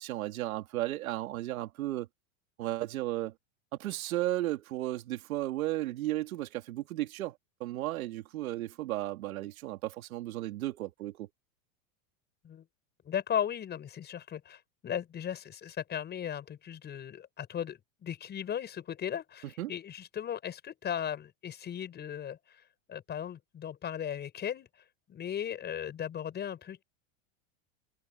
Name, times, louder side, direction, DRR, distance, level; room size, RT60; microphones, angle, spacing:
voice 1, 0.0-2.1 2.6-3.3 3.8-11.3 19.6-19.7, right 16 dB, 85° right, 2.9 m, -34 dB
voice 2, 13.0-22.4 22.9-24.7 25.1-26.8, left 9 dB, 25° left, 6.4 m, -37 dB
supercardioid pair, 145°, 41 cm